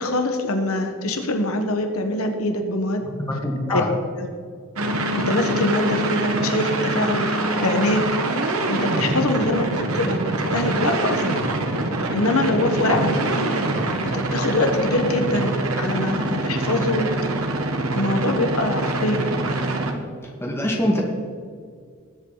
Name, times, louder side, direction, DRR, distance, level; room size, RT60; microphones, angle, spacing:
voice 1, 0.0-3.0 3.7-3.8 4.1-4.3 5.2-7.3 7.6-8.0 8.7-10.2 10.5-11.4 12.1-13.5 14.0-17.1 17.9-19.3, left 2 dB, 80° left, 5 dB, 1.3 m, -24 dB
voice 2, 3.0-3.9 12.9-13.1 20.2-21.0, left 1 dB, 10° left, -1 dB, 1.9 m, -24 dB
sound 1, 4.8-19.9, right 2 dB, 75° right, 1.4 m, -24 dB
19.5 x 8.3 x 4.0 m, 2.1 s
head